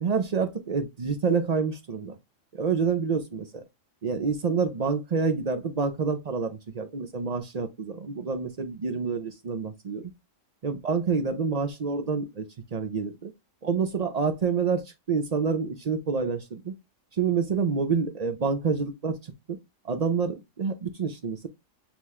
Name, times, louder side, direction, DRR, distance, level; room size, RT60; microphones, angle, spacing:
voice 1, 0.0-2.2 2.5-3.6 4.0-10.1 10.6-13.3 13.6-16.7 17.1-19.6 19.8-21.5, right 5 dB, 50° right, 0.5 m, -28 dB
5.5 x 3.0 x 3.1 m
omnidirectional pair, 1.4 m